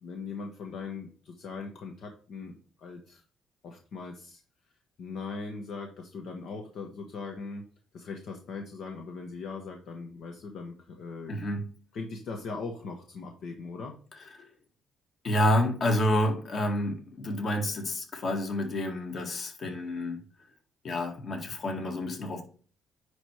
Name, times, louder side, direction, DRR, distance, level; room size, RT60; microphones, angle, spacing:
voice 1, 0.0-3.2 3.6-4.4 5.0-7.6 7.9-11.4 11.9-14.0, left 4 dB, 70° left, 1.3 m, -40 dB
voice 2, 11.3-11.7 14.4-14.5 15.2-20.2 20.8-22.4, left 1 dB, 45° left, 2.1 m, -29 dB
10.0 x 3.4 x 4.8 m
cardioid pair, 110°, 0 cm